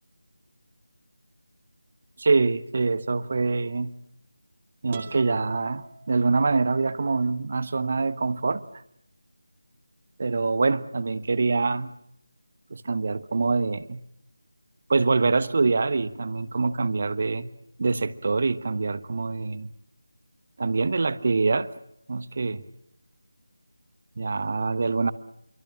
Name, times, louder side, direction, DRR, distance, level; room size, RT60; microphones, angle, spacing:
voice 1, 2.2-3.9 4.8-8.6 10.2-11.9 12.7-14.0 14.9-17.5 17.8-19.7 20.6-21.7 22.1-22.6 24.2-25.1, right 3 dB, 40° right, 15 dB, 1.1 m, -25 dB
sound 1, 4.9-6.8, right 5 dB, 20° right, 1.7 m, -45 dB
28.0 x 24.0 x 7.5 m, 0.76 s
figure-of-eight pair, 160°, 0 cm